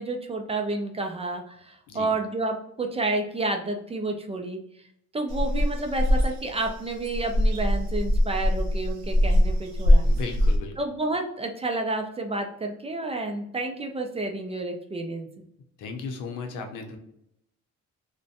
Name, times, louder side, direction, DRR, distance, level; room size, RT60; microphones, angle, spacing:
voice 1, 0.0-4.6 5.1-10.1 10.8-15.5, right 2 dB, 20° right, 3 dB, 0.4 m, -30 dB
sound 1, 5.3-10.6, left 1 dB, 65° right, 0.7 m, -22 dB
voice 2, 10.0-10.8 15.8-17.0, left 4 dB, 80° left, 4 dB, 0.6 m, -35 dB
2.5 x 2.1 x 2.6 m, 0.76 s
cardioid pair, 90°, 30 cm